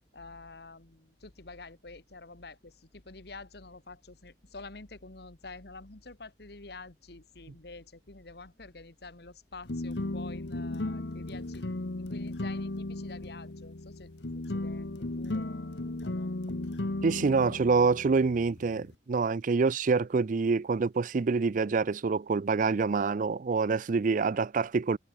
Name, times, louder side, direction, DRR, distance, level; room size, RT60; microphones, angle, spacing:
voice 1, 0.1-11.7 12.0-16.4, left 3 dB, 65° left, 1.8 m, -48 dB
sound 1, 9.7-18.9, left 2 dB, 85° left, 1.3 m, -36 dB
voice 2, 17.0-25.0, right 4 dB, 50° right, 0.4 m, -26 dB
head